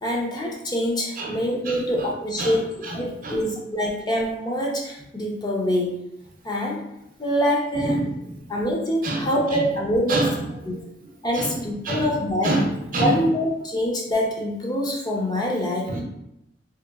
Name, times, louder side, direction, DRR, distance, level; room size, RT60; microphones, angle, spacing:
voice 1, 0.0-6.0 6.4-6.9 7.2-8.0 8.5-10.3 11.2-12.6 13.0-15.9, equal, 25° left, -2 dB, 0.5 m, -25 dB
voice 2, 2.4-3.0 3.2-3.4 7.8-8.4 9.0-9.6 10.1-10.4 10.7-10.8 11.3-11.6 11.8-12.1 12.4-13.2 15.9-16.0, right 2 dB, 50° right, 0 dB, 0.6 m, -27 dB
3.0 x 2.8 x 2.3 m, 0.83 s
head